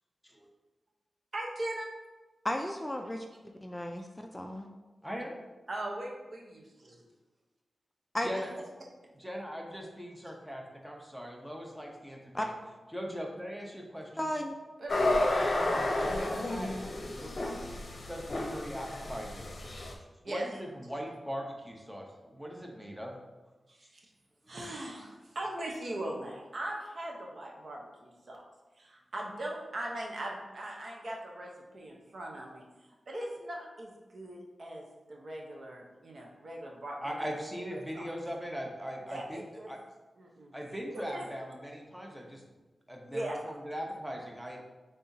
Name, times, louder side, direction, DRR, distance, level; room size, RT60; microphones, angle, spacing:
voice 1, 1.3-1.9 5.7-7.1 8.3-8.4 14.8-15.2 20.2-20.5 23.7-24.0 24.5-28.5 28.8-32.6 33.1-34.8 35.1-37.2 37.7-38.1 39.1-39.7 40.2-40.5 40.9-41.3 43.1-43.4, right 1 dB, 60° right, -1 dB, 0.8 m, -40 dB
voice 2, 2.4-4.7 8.1-8.3 12.3-12.5 14.2-14.5, left 1 dB, 15° left, 3 dB, 0.3 m, -34 dB
voice 3, 5.0-5.3 8.2-8.5 9.2-12.6 12.9-14.3 16.0-17.3 18.1-19.5 20.3-23.2 37.0-39.4 39.7-39.8 40.5-42.4 42.9-44.6, equal, 5° right, 0 dB, 0.8 m, -40 dB
sound 1, 14.9-19.9, left 2 dB, 55° left, 0.7 m, -31 dB
5.5 x 3.5 x 2.7 m, 1.2 s
wide cardioid pair, 85°, 0 cm